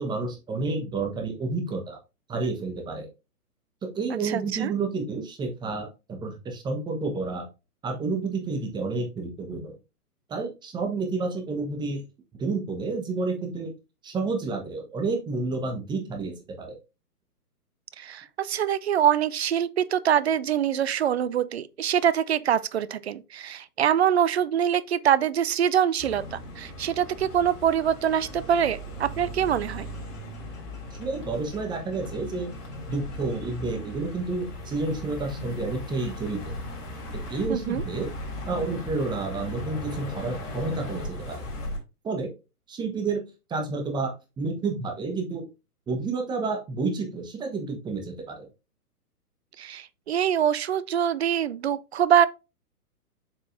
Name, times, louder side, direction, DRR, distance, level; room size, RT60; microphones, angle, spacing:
voice 1, 0.0-2.0 2.3-3.1 3.8-7.5 7.8-9.7 10.3-12.0 12.4-13.7 14.0-16.8 31.0-32.5 32.9-36.5 37.3-38.1 38.5-41.4 42.0-42.3 42.7-43.2 43.5-45.5 45.9-48.5, right 3 dB, 10° right, 1.1 m, -30 dB
voice 2, 4.2-4.7 18.0-29.9 37.5-37.8 49.6-52.3, right 9 dB, 45° right, 0.5 m, -24 dB
sound 1, 26.0-41.8, left 1 dB, 55° left, 4.0 m, -37 dB
7.3 x 5.3 x 2.6 m
figure-of-eight pair, 125°, 46 cm